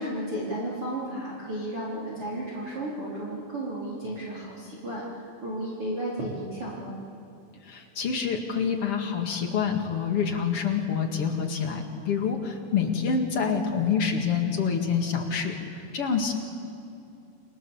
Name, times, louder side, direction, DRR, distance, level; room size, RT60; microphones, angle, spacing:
voice 1, 0.0-7.0, right 1 dB, 30° right, -5 dB, 4.6 m, -33 dB
voice 2, 7.6-15.5 15.9-16.3, left 6 dB, 45° left, 3 dB, 2.1 m, -27 dB
29.5 x 25.5 x 7.3 m, 2.7 s
omnidirectional pair, 5.3 m